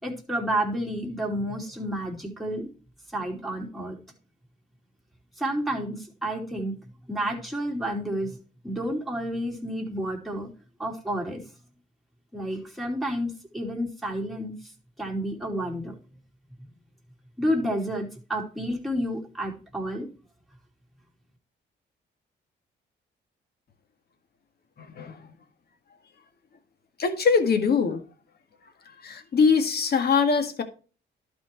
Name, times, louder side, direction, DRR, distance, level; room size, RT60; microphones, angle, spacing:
voice 1, 0.0-2.7 3.1-4.0 5.4-6.8 7.1-8.4 8.6-10.5 10.8-11.4 12.3-14.7 15.0-16.0 16.6-16.7 17.4-20.1, equal, ahead, 3.0 m, -30 dB
voice 2, 24.8-25.3 27.0-28.0 29.0-30.6, left 5 dB, 55° left, 1.7 m, -23 dB
11.5 x 4.5 x 4.5 m
cardioid pair, 90°, 20 cm